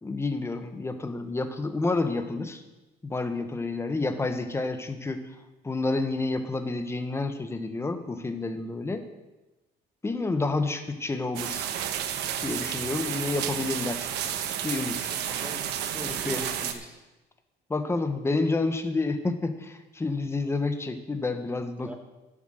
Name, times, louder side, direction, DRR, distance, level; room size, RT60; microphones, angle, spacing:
voice 1, 0.0-2.6 3.0-5.2 5.6-9.0 10.0-11.7 12.4-14.1 14.6-15.1 16.0-16.4 17.7-21.9, left 3 dB, 15° left, 7 dB, 1.1 m, -29 dB
sound 1, 11.4-16.7, right 9 dB, 80° right, 1.1 m, -31 dB
voice 2, 15.3-17.0 21.8-21.9, right 1 dB, 5° right, 3 dB, 1.1 m, -41 dB
11.5 x 7.6 x 6.5 m, 1.1 s
cardioid pair, 110°, 17 cm